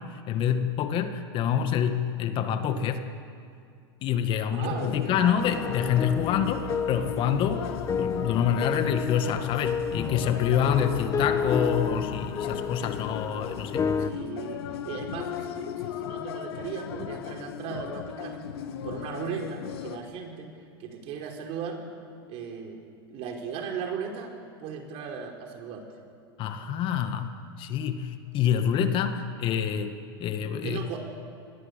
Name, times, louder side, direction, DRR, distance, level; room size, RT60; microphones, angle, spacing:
voice 1, 0.0-3.1 4.0-7.7 8.0-13.9 26.4-29.9 30.2-30.8, left 8 dB, 40° left, 7 dB, 2.0 m, -27 dB
voice 2, 4.4-5.2 6.2-6.3 14.0-18.4 18.8-20.5 20.8-21.8 22.3-22.8 23.1-24.3 24.6-25.9 30.6-31.0, right 6 dB, 50° right, 2 dB, 5.2 m, -37 dB
sound 1, 4.6-20.0, left 9 dB, 75° left, 1.9 m, -37 dB
sound 2, 5.4-14.1, left 6 dB, 25° left, 1.1 m, -31 dB
27.0 x 20.5 x 8.4 m, 2.3 s
supercardioid pair, 120°, 13 cm